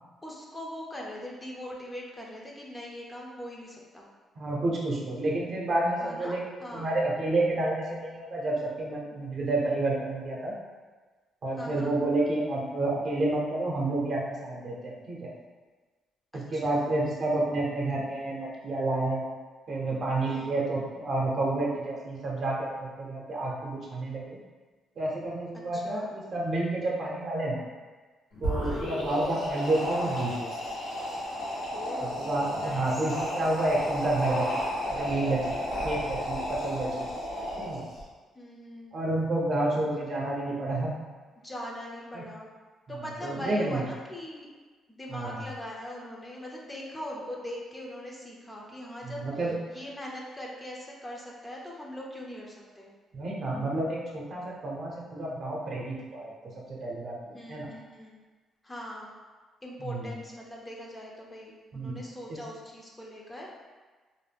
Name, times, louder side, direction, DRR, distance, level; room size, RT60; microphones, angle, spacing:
voice 1, 0.2-4.0 6.0-6.9 11.6-11.9 16.5-16.9 20.2-20.6 25.7-26.1 28.6-29.0 31.7-32.3 32.6-33.1 38.4-39.0 41.4-42.5 42.9-44.5 44.9-49.2 49.7-52.9 57.3-58.2 58.6-59.1 59.6-63.5, left 1 dB, 15° left, -3 dB, 0.5 m, -41 dB
voice 2, 4.4-10.5 11.4-15.3 16.3-19.3 19.7-24.4 25.0-27.6 28.4-30.5 32.0-34.6 34.9-35.6 35.8-37.1 37.6-37.8 38.9-40.9 42.1-42.2 42.9-43.8 45.1-45.4 49.0-49.6 53.1-56.3 56.7-57.7 59.8-60.1 61.7-62.0 62.3-62.4, right 2 dB, 50° right, -3 dB, 0.7 m, -30 dB
sound 1, 28.3-38.0, equal, 80° left, 0.9 m, -33 dB
2.5 x 2.1 x 3.3 m, 1.3 s
cardioid pair, 90°, 0 cm